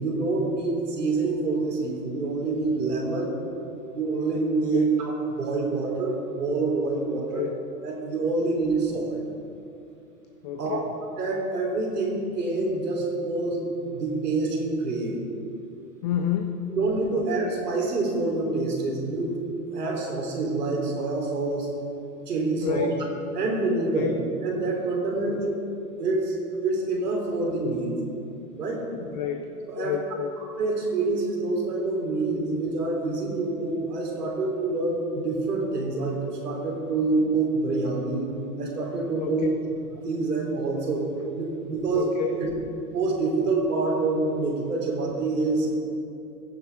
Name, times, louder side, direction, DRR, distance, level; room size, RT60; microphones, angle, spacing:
voice 1, 0.0-3.3 3.9-7.4 7.8-9.2 10.6-10.8 11.2-15.1 16.7-19.4 19.7-21.7 22.3-22.9 23.3-24.1 24.4-25.6 26.0-26.4 26.6-27.9 28.6-28.8 29.7-29.9 30.6-38.3 38.6-39.5 40.0-41.0 41.4-42.1 42.4-42.5 42.9-45.8, right 3 dB, 85° right, -1 dB, 3.2 m, -26 dB
voice 2, 7.1-7.6 8.4-8.5 10.4-10.9 16.0-16.7 17.1-17.2 22.6-23.0 23.9-24.2 25.3-25.4 29.0-29.5 29.7-30.3 39.2-39.5 41.9-42.4, left 9 dB, 30° left, 6 dB, 0.5 m, -30 dB
16.0 x 7.3 x 4.5 m, 2.6 s
hypercardioid pair, 125°, 46 cm